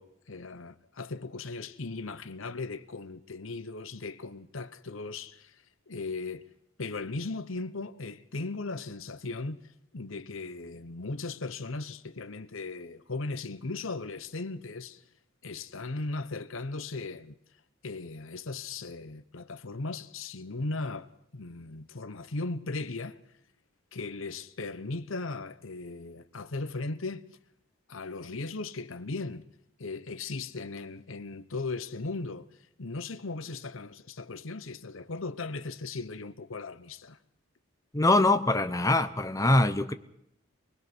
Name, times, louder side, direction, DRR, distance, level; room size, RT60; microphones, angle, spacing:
voice 1, 0.0-6.5 6.8-9.6 9.9-15.0 15.4-17.3 17.8-23.2 23.9-27.2 27.9-29.5 29.8-32.5 32.8-37.2, left 3 dB, 70° left, 1.0 m, -37 dB
voice 2, 37.9-39.9, left 2 dB, 15° left, 0.8 m, -23 dB
24.5 x 20.5 x 6.1 m
head